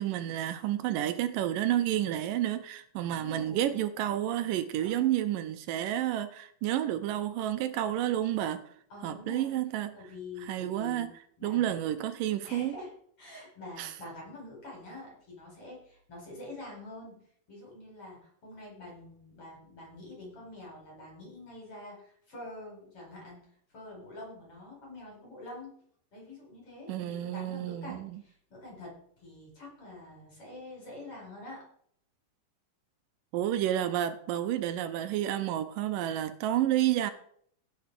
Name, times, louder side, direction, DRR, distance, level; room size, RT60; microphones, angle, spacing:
voice 1, 0.0-8.6 9.0-9.9 10.4-11.1 11.4-12.8 13.8-13.9 26.9-28.2 33.3-37.1, right 12 dB, 85° right, 2.3 m, -30 dB
voice 2, 3.1-3.8 4.8-5.2 8.9-9.6 9.9-11.1 11.4-11.9 12.4-12.9 13.2-17.2 17.5-23.4 23.7-25.7 26.1-31.6, left 2 dB, 40° left, 6.2 m, -46 dB
16.5 x 7.1 x 5.0 m
omnidirectional pair, 4.0 m